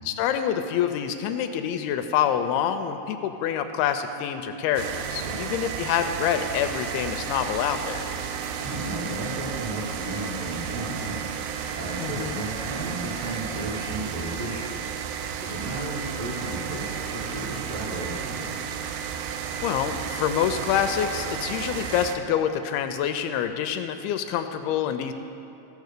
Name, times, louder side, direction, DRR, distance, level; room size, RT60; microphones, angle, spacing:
voice 1, 0.1-8.0 12.0-12.4 19.6-25.1, left 9 dB, 85° left, 8 dB, 2.4 m, -26 dB
sound 1, 4.8-22.2, right 7 dB, 80° right, 2.3 m, -33 dB
voice 2, 8.4-14.9 15.4-18.5, right 2 dB, 55° right, -7 dB, 2.1 m, -34 dB
15.5 x 6.9 x 6.6 m, 2.9 s
omnidirectional pair, 4.6 m